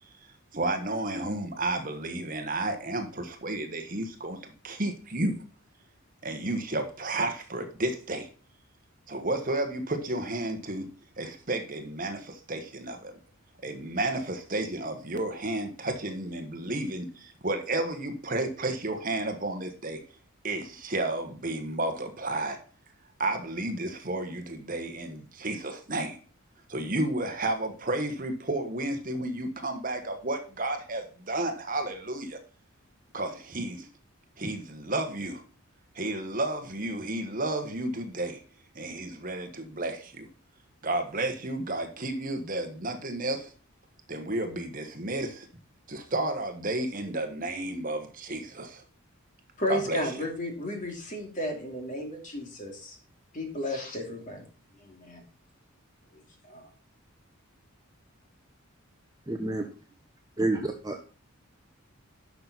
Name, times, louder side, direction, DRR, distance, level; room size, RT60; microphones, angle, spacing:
voice 1, 0.5-5.4 6.2-8.3 9.1-10.9 11.2-13.1 13.6-20.0 20.4-22.6 23.2-26.2 26.7-32.4 33.1-33.9 34.4-35.4 35.9-38.4 38.7-40.3 40.8-43.5 44.1-45.5 45.9-48.8 49.7-50.3, right 2 dB, 40° right, 6 dB, 1.4 m, -32 dB
voice 2, 49.6-53.0 53.3-54.4 54.8-55.2 56.1-56.7, left 1 dB, 35° left, 2 dB, 2.8 m, -34 dB
voice 3, 59.3-59.6 60.4-61.0, right 2 dB, 15° right, 3 dB, 0.8 m, -28 dB
11.5 x 6.0 x 4.1 m, 0.40 s
head